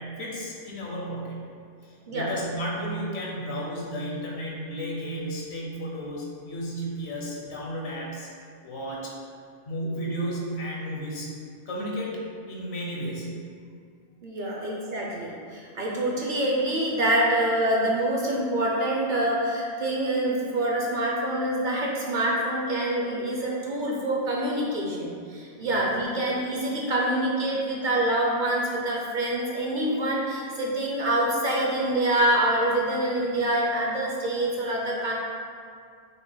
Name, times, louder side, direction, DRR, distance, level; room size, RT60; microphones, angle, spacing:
voice 1, 0.0-1.4 2.1-8.3 8.6-9.1 9.7-11.3 11.7-12.2 12.5-13.3 14.6-14.7, equal, 75° left, -3 dB, 1.1 m, -33 dB
voice 2, 14.2-35.1, right 1 dB, 55° right, -3 dB, 0.7 m, -26 dB
5.4 x 2.1 x 3.9 m, 2.2 s
omnidirectional pair, 1.1 m